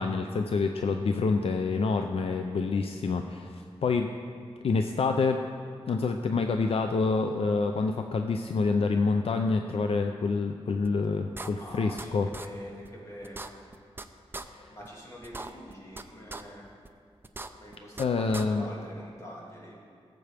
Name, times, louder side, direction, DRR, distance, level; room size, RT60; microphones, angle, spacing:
voice 1, 0.0-4.1 4.6-5.4 5.9-12.3 14.4-14.8 18.0-18.7, left 4 dB, 65° left, 5 dB, 0.4 m, -27 dB
sound 1, 10.8-10.9 11.3-12.1 12.3-12.5 12.8-12.9 13.2-14.0 14.3-14.4 14.8-14.9 15.2-16.0 16.3-16.4 16.8-16.9 17.2-18.0 18.3-18.4, right 2 dB, 20° right, 0.4 m, -39 dB
voice 2, 11.5-13.6 14.7-16.6 17.5-19.8, equal, 30° left, -4 dB, 2.3 m, -45 dB
17.5 x 7.7 x 3.4 m, 2.3 s
wide cardioid pair, 130°, 10 cm